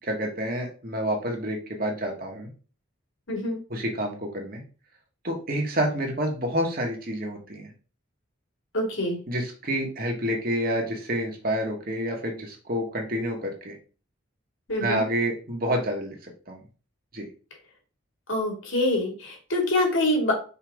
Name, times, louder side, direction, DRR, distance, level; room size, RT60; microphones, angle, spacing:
voice 1, 0.0-2.5 3.7-4.6 5.2-7.7 9.3-13.7 14.8-16.2 16.5-16.6 17.1-17.3, equal, 45° right, 1 dB, 1.7 m, -28 dB
voice 2, 3.3-3.6 8.7-9.2 14.7-15.0 18.3-20.3, left 1 dB, 75° left, 1 dB, 2.5 m, -25 dB
5.6 x 3.8 x 4.8 m, 0.36 s
head